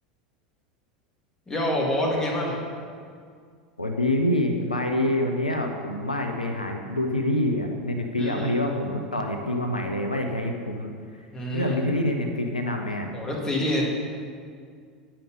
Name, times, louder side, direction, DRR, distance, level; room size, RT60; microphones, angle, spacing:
voice 1, 1.5-2.5 8.2-8.5 11.3-11.8 13.1-13.9, left 1 dB, 15° left, -2 dB, 1.9 m, -26 dB
voice 2, 3.8-13.1, left 1 dB, 90° left, 3 dB, 0.6 m, -26 dB
9.0 x 5.7 x 5.2 m, 2.1 s
figure-of-eight pair, 80°, 4 cm